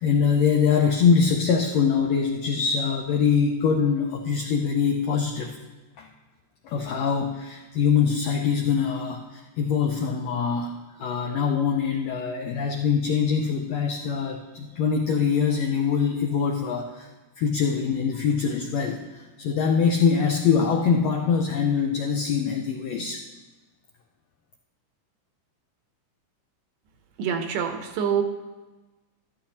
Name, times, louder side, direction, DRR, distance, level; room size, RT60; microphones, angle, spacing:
voice 1, 0.0-5.5 6.0-6.1 6.6-10.7 11.0-17.1 17.4-23.2, left 6 dB, 80° left, 2 dB, 1.5 m, -23 dB
voice 2, 27.2-28.2, right 7 dB, 80° right, 6 dB, 2.5 m, -26 dB
13.0 x 11.5 x 2.9 m, 1.2 s
omnidirectional pair, 3.8 m